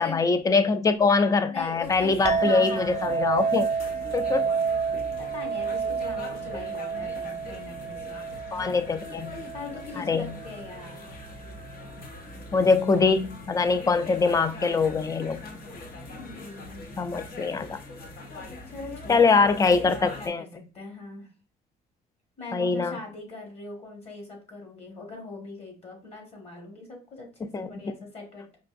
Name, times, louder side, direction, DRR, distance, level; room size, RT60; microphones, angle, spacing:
voice 1, 0.0-3.7 4.1-4.5 8.5-9.4 10.0-10.4 12.5-15.5 17.0-17.8 19.1-20.4 22.5-23.0 27.5-27.7, left 4 dB, 20° left, 0.4 m, -23 dB
voice 2, 1.5-3.1 4.0-4.5 5.2-8.2 9.5-11.0 16.2-16.9 18.7-19.3 19.6-20.5 20.7-21.3 22.4-28.5, left 3 dB, 40° left, 1.5 m, -41 dB
sound 1, 1.8-20.3, left 2 dB, 60° left, 0.9 m, -42 dB
Chink clink, 2.2-11.0, right 6 dB, 40° right, 0.4 m, -30 dB
4.7 x 2.6 x 2.5 m
cardioid pair, 110°, 17 cm